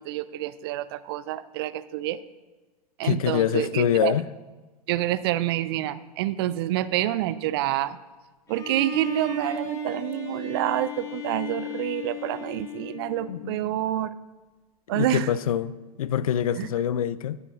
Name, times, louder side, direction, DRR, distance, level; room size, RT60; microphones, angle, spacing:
voice 1, 0.0-2.2 3.0-4.2 4.9-8.0 8.5-14.1 14.9-15.3 16.6-16.7, right 14 dB, 40° right, 0.4 m, -27 dB
voice 2, 3.0-4.2 13.3-13.7 14.9-17.4, left 10 dB, 60° left, 0.4 m, -25 dB
Bowed string instrument, 8.5-13.5, left 5 dB, 15° left, 1.5 m, -36 dB
18.0 x 6.9 x 2.4 m
figure-of-eight pair, 100°, 20 cm